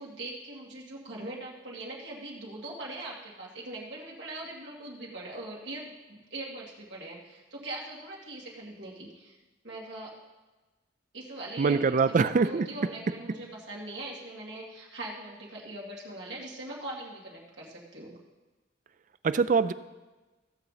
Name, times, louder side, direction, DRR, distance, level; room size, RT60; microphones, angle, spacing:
voice 1, 0.0-9.4 9.6-10.1 11.1-18.2, right 2 dB, 70° right, -4 dB, 2.4 m, -41 dB
voice 2, 11.6-12.7 19.2-19.7, right 5 dB, 45° right, 13 dB, 0.4 m, -23 dB
15.5 x 6.9 x 4.1 m, 1.2 s
head